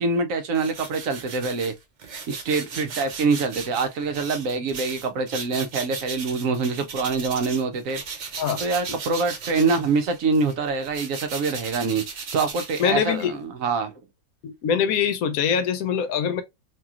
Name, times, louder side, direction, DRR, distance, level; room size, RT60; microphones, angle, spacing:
voice 1, 0.0-1.7 2.3-8.2 8.6-13.9, right 4 dB, 70° right, 0.9 m, -25 dB
sound 1, 0.5-7.6 7.9-13.4, right 5 dB, 90° right, 0.4 m, -37 dB
voice 2, 12.8-13.4 14.4-16.4, left 7 dB, 75° left, 1.0 m, -23 dB
3.0 x 2.7 x 2.3 m
omnidirectional pair, 1.6 m